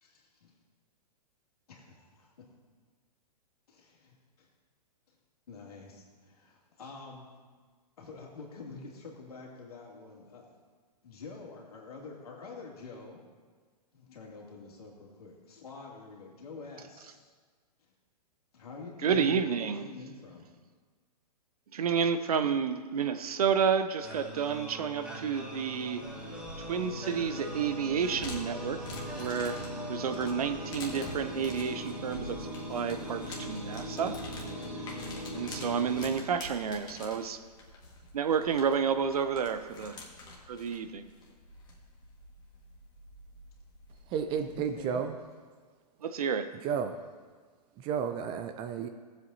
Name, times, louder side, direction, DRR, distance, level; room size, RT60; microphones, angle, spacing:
voice 1, 0.0-0.5 1.7-2.5 3.7-4.5 5.1-5.2 5.5-7.3 8.0-10.5 11.0-13.2 13.9-17.3 17.8-17.9 18.5-20.5 44.5-45.0, left 4 dB, 65° left, -2 dB, 2.5 m, -47 dB
voice 2, 19.0-19.9 21.7-26.0 26.6-29.6 29.9-34.2 35.3-37.4 38.1-40.0 40.5-41.1 46.0-46.5, right 7 dB, 60° right, 10 dB, 0.7 m, -30 dB
sound 1, 24.0-36.9, equal, 5° right, 2.3 m, -40 dB
sound 2, 26.0-45.0, left 2 dB, 20° left, 1.7 m, -48 dB
voice 3, 44.1-45.1 46.6-46.9 47.8-48.9, right 7 dB, 25° right, 7 dB, 0.5 m, -32 dB
18.0 x 7.7 x 2.7 m, 1.5 s
figure-of-eight pair, 115°, 21 cm